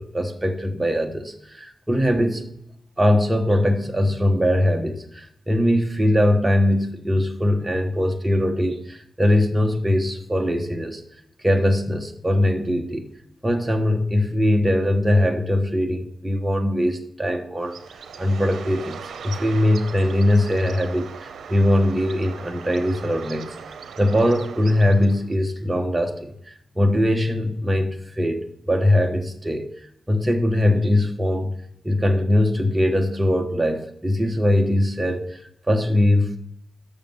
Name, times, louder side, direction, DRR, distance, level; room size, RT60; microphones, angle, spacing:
voice 1, 0.0-2.5 3.0-11.0 11.4-13.1 13.4-17.8 18.2-23.5 24.0-27.9 28.2-29.7 30.1-31.5 31.8-36.4, left 1 dB, 15° right, 4 dB, 1.2 m, -21 dB
Bird, 17.6-25.3, right 6 dB, 80° right, 0.7 m, -39 dB
7.4 x 6.6 x 7.2 m, 0.73 s
cardioid pair, 75°, 0 cm